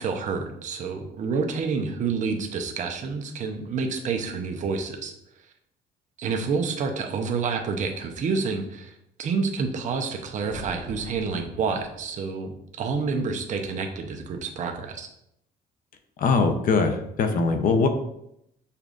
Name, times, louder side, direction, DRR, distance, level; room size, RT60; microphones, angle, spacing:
voice 1, 0.0-5.1 6.2-8.9 9.2-15.1, right 5 dB, 45° right, 4 dB, 0.6 m, -28 dB
sound 1, 10.4-12.7, equal, 10° right, 1.2 m, -44 dB
voice 2, 16.2-17.9, left 4 dB, 55° left, 7 dB, 0.6 m, -21 dB
6.7 x 2.4 x 2.4 m, 0.77 s
cardioid pair, 110°, 17 cm